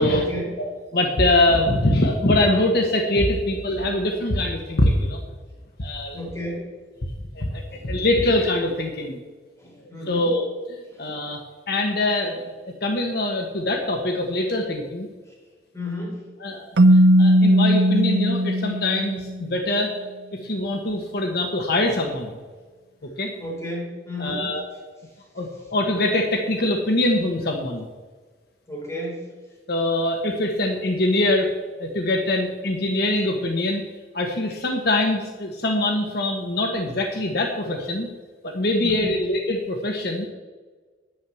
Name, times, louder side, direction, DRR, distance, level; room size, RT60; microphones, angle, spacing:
voice 1, 0.1-0.5 6.1-6.7 7.7-7.9 9.6-10.3 10.9-11.1 15.3-15.4 15.7-16.2 20.8-20.9 23.4-24.5 28.7-29.3 38.8-39.2, left 1 dB, 15° left, -3 dB, 4.4 m, -33 dB
voice 2, 0.6-5.2 5.8-6.2 7.3-9.2 10.1-12.5 12.8-15.1 16.4-19.9 20.3-22.3 23.2-23.3 24.2-24.6 25.3-27.8 29.7-31.5 31.8-33.8 34.1-38.1 38.4-40.3, left 1 dB, 60° left, 2 dB, 1.3 m, -23 dB
Keyboard (musical), 16.8-19.5, equal, 75° right, 0.5 m, -17 dB
10.5 x 9.3 x 7.1 m, 1.4 s
head